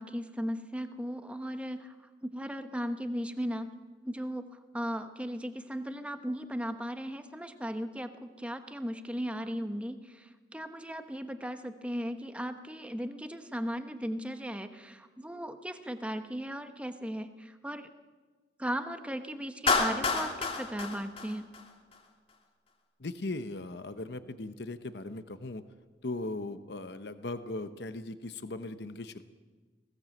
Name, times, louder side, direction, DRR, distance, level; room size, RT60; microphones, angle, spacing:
voice 1, 0.0-1.9 2.2-3.7 4.0-17.9 18.6-21.5, equal, 5° right, 8 dB, 1.0 m, -37 dB
Clapping, 19.7-22.0, left 4 dB, 35° left, 2.1 m, -29 dB
voice 2, 23.0-25.6 26.0-29.2, left 2 dB, 65° left, 11 dB, 0.9 m, -38 dB
20.0 x 17.0 x 7.7 m, 1.4 s
head